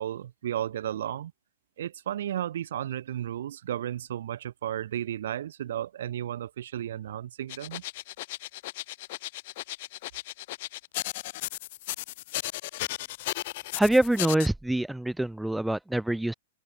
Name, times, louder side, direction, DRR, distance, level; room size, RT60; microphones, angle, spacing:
voice 1, 0.0-1.3 1.8-7.8, right 11 dB, 70° right, 0.9 m, -33 dB
sound 1, 7.5-14.5, left 18 dB, 50° left, 0.4 m, -35 dB
voice 2, 13.8-16.3, right 1 dB, ahead, 0.8 m, -25 dB
hypercardioid pair, 155°, 0 cm